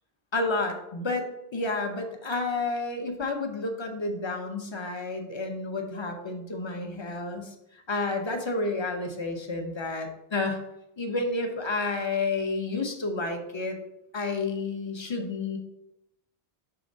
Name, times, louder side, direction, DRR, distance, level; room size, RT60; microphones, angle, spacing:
voice 1, 0.3-1.2 1.5-7.5 7.9-10.6 11.0-13.8 14.1-15.6, left 3 dB, 30° left, 4 dB, 0.7 m, -30 dB
5.8 x 3.4 x 5.3 m, 0.85 s
omnidirectional pair, 1.0 m